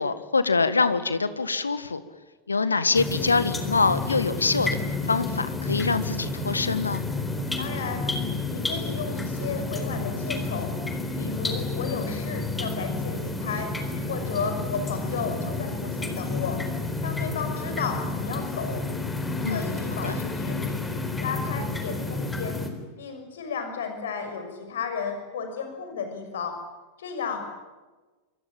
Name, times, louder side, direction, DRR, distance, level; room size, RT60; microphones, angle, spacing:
voice 1, 0.0-2.0 2.5-4.7 5.1-7.0 19.4-19.7 20.0-20.1, left 4 dB, 75° left, 13 dB, 1.6 m, -24 dB
sound 1, 2.9-22.7, left 3 dB, 10° left, 4.1 m, -30 dB
voice 2, 7.6-8.0 8.5-10.7 11.2-13.7 14.1-16.6 17.0-18.9 19.4-20.8 21.2-22.6 23.0-26.6 27.0-27.5, left 5 dB, 60° left, 6 dB, 6.1 m, -33 dB
27.0 x 24.5 x 8.9 m, 1.2 s
figure-of-eight pair, 90°, 0 cm